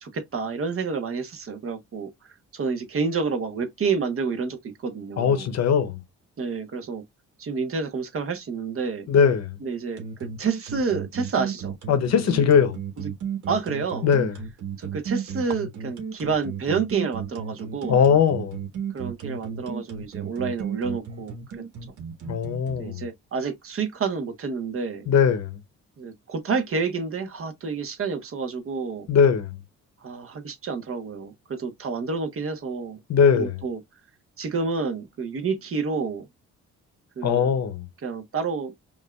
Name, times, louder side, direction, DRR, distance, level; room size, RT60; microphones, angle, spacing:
voice 1, 0.0-2.1 2.5-5.5 6.4-7.0 7.4-9.1 9.6-11.8 12.2-12.3 13.0-13.1 13.5-14.1 14.8-18.0 18.9-21.6 22.8-25.1 26.0-29.1 30.0-33.0 33.3-33.8 34.4-36.3 37.2-37.5 38.0-38.7, right 5 dB, 45° right, 1.1 m, -29 dB
voice 2, 5.2-6.0 9.1-9.6 11.9-12.8 14.0-14.3 17.9-18.6 22.3-23.0 25.1-25.5 29.1-29.5 33.1-33.6 37.2-37.8, left 7 dB, 60° left, 0.8 m, -20 dB
sound 1, 10.0-22.8, right 7 dB, 75° right, 1.5 m, -34 dB
5.2 x 2.6 x 2.3 m
cardioid pair, 90°, 30 cm